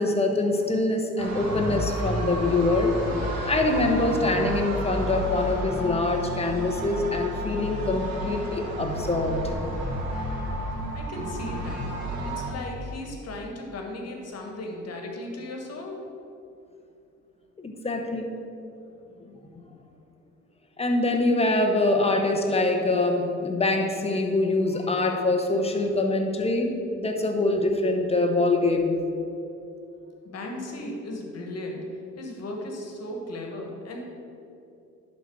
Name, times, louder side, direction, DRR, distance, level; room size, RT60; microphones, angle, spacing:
voice 1, 0.0-9.4 17.6-18.3 19.2-19.4 20.8-29.0, left 2 dB, 20° left, 3 dB, 1.0 m, -24 dB
sound 1, 1.2-12.5, right 1 dB, 60° right, 1.8 m, -31 dB
voice 2, 10.9-11.9 12.2-16.0 30.2-31.9 32.2-34.1, left 1 dB, 55° left, 1 dB, 1.5 m, -36 dB
11.0 x 4.2 x 4.6 m, 2.7 s
cardioid pair, 90°, 30 cm